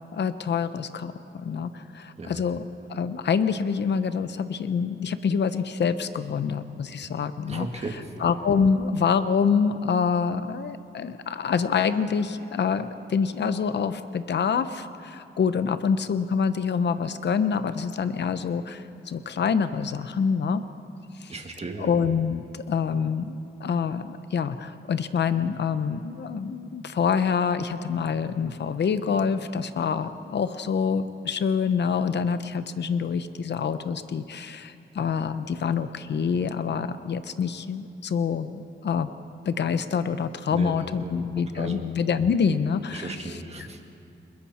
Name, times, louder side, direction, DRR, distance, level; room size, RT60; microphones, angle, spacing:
voice 1, 0.1-7.7 8.2-20.6 21.2-21.3 21.8-39.1 39.4-43.7, left 6 dB, 65° left, 11 dB, 0.8 m, -26 dB
voice 2, 7.5-8.2 21.3-22.0 40.5-41.2 41.5-41.8 42.9-43.8, right 3 dB, 35° right, 3 dB, 2.0 m, -36 dB
30.0 x 21.0 x 4.3 m, 2.6 s
wide cardioid pair, 125°, 19 cm